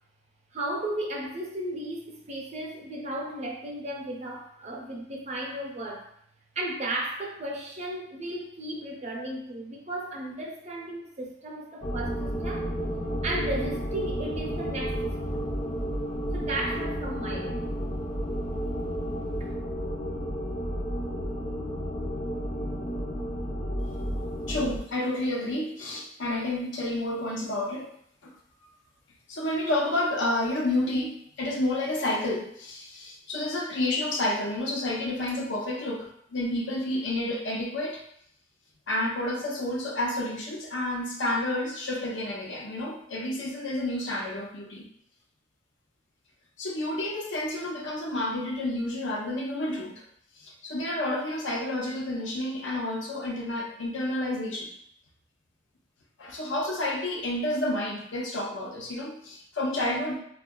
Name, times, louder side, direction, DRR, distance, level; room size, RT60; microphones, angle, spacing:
voice 1, 0.5-6.1 6.6-12.7 13.2-15.4 16.3-17.7 19.4-19.5, right 1 dB, 40° right, -1 dB, 0.6 m, -35 dB
sound 1, 11.8-24.8, equal, 35° left, 0.5 m, -32 dB
voice 2, 24.5-27.9 28.2-28.3 29.3-38.0 38.9-44.8 46.6-50.0 50.4-54.7 56.2-60.2, left 1 dB, 85° left, -1 dB, 0.7 m, -30 dB
4.4 x 2.3 x 2.2 m, 0.68 s
head